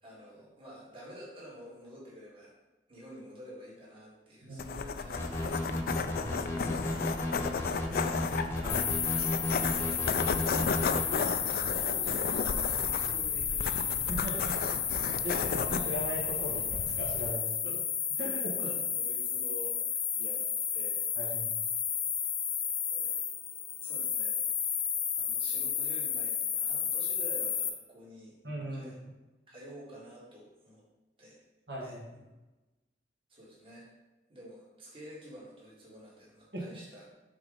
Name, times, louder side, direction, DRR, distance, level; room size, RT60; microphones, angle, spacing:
voice 1, 0.0-2.5 2.9-5.9 9.6-10.3 11.5-14.8 15.3-15.7 17.6-17.8 18.2-20.4 20.7-21.0 22.9-23.2 23.5-24.5 24.8-24.9 25.1-28.4 28.7-29.0 29.5-30.8 31.2-31.4 31.8-32.0 33.3-33.9 34.3-37.1, equal, 30° right, -6 dB, 1.9 m, -50 dB
voice 2, 4.4-4.8 6.1-6.6 8.6-9.1 14.1-14.6 15.2-17.8 18.2-18.7 21.2-21.6 28.4-28.9 31.7-32.0 36.5-36.7, equal, 70° right, -5 dB, 1.5 m, -39 dB
sound 1, 4.6-17.3, left 5 dB, 55° left, 0.3 m, -34 dB
sound 2, 5.2-11.1, left 1 dB, 15° left, 0.9 m, -34 dB
sound 3, 8.7-27.7, left 8 dB, 80° left, 0.8 m, -32 dB
6.0 x 3.8 x 5.0 m, 1.1 s
head